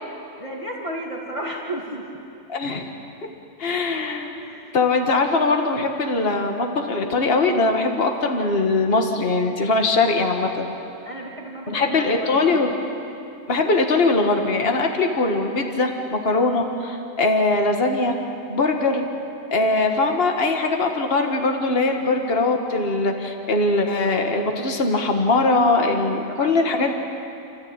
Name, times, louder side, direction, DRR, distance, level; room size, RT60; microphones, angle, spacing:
voice 1, 0.4-2.1 4.3-4.7 11.0-12.7 26.1-26.9, right 1 dB, 20° right, -2 dB, 2.5 m, -33 dB
voice 2, 2.5-2.9 3.6-4.3 4.7-10.7 11.7-12.7 13.5-18.1 18.5-19.1 19.5-26.9, left 3 dB, 40° left, 3 dB, 1.9 m, -21 dB
30.0 x 14.0 x 8.8 m, 2.7 s
omnidirectional pair, 1.6 m